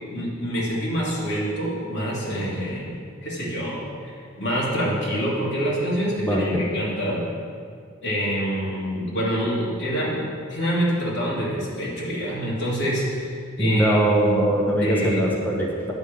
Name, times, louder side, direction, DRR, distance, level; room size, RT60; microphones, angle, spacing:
voice 1, 0.1-2.9 3.2-3.8 4.4-7.2 8.0-13.3 13.6-14.4 14.8-15.2, equal, 60° left, -6 dB, 2.7 m, -26 dB
voice 2, 6.2-6.6 13.6-15.9, right 1 dB, 10° left, -3 dB, 1.1 m, -22 dB
9.8 x 5.4 x 7.6 m, 2.2 s
head